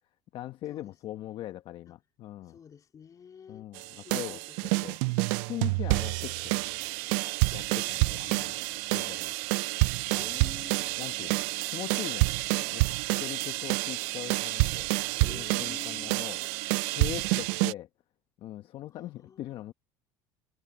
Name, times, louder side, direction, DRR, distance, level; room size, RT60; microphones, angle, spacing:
voice 1, 0.3-2.6 3.5-4.4 4.8-5.0 5.4-6.6 7.5-8.5 8.9-9.3 10.1-10.3 11.0-14.9 15.2-16.4 16.9-17.9 18.4-19.7, left 13 dB, 55° left, 1.1 m, -41 dB
voice 2, 2.4-3.7 4.0-4.8 10.2-10.9 15.1-16.2 18.9-19.7, left 7 dB, 35° left, 3.2 m, -49 dB
sound 1, 3.8-17.7, right 27 dB, 75° right, 0.4 m, -28 dB
supercardioid pair, 105°, 11 cm